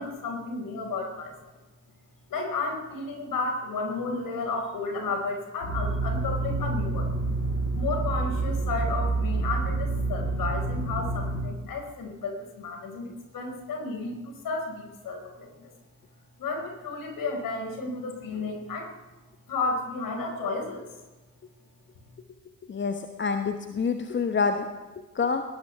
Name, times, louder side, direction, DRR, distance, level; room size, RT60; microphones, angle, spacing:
voice 1, 0.0-1.5 2.3-7.1 7.7-15.7 16.4-18.9 19.5-20.9, left 3 dB, 50° left, 2 dB, 5.3 m, -32 dB
sound 1, 5.6-11.4, right 3 dB, 70° left, 6.6 m, -28 dB
voice 2, 22.7-24.7 25.2-25.4, left 5 dB, 25° left, 7 dB, 1.1 m, -27 dB
19.5 x 18.5 x 3.5 m, 1.1 s
figure-of-eight pair, 45°, 42 cm